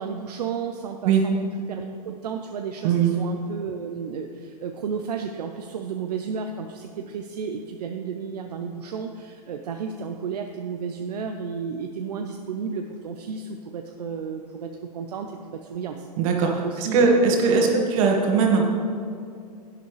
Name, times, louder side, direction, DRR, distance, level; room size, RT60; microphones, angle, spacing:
voice 1, 0.0-17.8, right 6 dB, 75° right, 4 dB, 0.7 m, -33 dB
voice 2, 16.2-16.5 16.8-18.7, right 5 dB, 55° right, 1 dB, 1.9 m, -19 dB
11.0 x 9.2 x 3.3 m, 2.4 s
hypercardioid pair, 110°, 21 cm